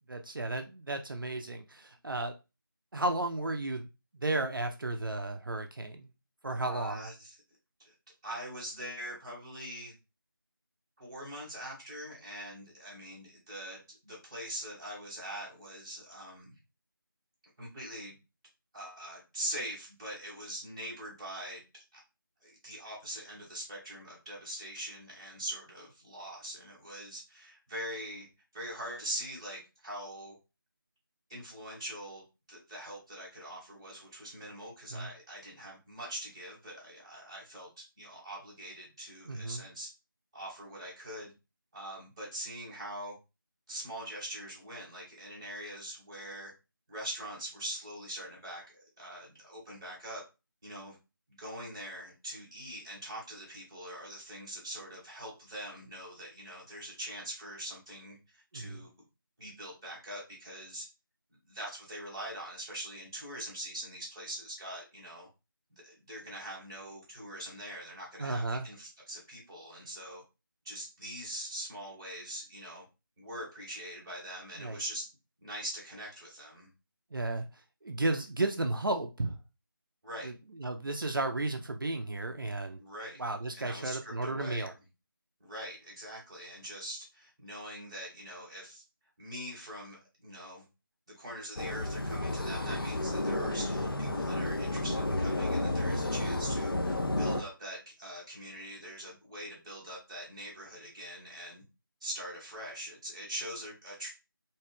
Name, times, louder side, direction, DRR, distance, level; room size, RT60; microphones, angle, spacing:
voice 1, 0.1-2.4 2.9-3.9 4.2-6.1 6.4-7.0 34.9-35.1 39.2-39.6 58.5-58.8 68.2-68.7 74.6-74.8 77.1-79.4 80.2-80.3 80.6-82.8 83.2-84.7, right 2 dB, 65° right, 0.4 m, -33 dB
voice 2, 6.6-7.3 7.8-7.9 8.2-9.9 11.0-16.6 17.6-18.2 18.7-21.6 21.9-22.0 22.4-28.3 28.5-30.3 31.3-39.9 40.3-41.3 41.7-43.2 43.7-46.5 46.9-48.6 49.0-50.2 50.6-51.0 51.4-58.9 59.4-60.8 61.5-65.3 65.7-70.2 70.6-72.8 73.2-75.0 75.4-76.7 80.0-80.3 82.8-83.2 83.5-84.7 85.4-88.8 89.2-90.7 91.1-101.6 102.0-104.1, right 1 dB, 15° right, 0.9 m, -43 dB
sound 1, 91.6-97.4, left 2 dB, 75° left, 0.5 m, -31 dB
2.5 x 2.3 x 3.3 m
figure-of-eight pair, 165°, 12 cm